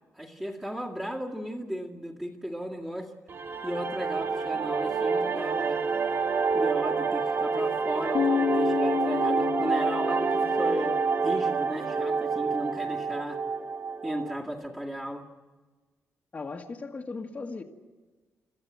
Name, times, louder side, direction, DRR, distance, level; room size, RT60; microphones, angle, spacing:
voice 1, 0.2-3.1 3.6-5.8 6.5-11.0 11.2-13.4 14.0-15.3, equal, 10° right, 2.2 m, -35 dB
sound 1, 3.3-14.4, right 5 dB, 40° right, 0.9 m, -28 dB
sound 2, 8.1-12.1, left 7 dB, 80° left, 1.7 m, -31 dB
voice 2, 16.3-17.6, left 3 dB, 30° left, 1.6 m, -37 dB
27.5 x 14.5 x 9.3 m
wide cardioid pair, 145°, 5 cm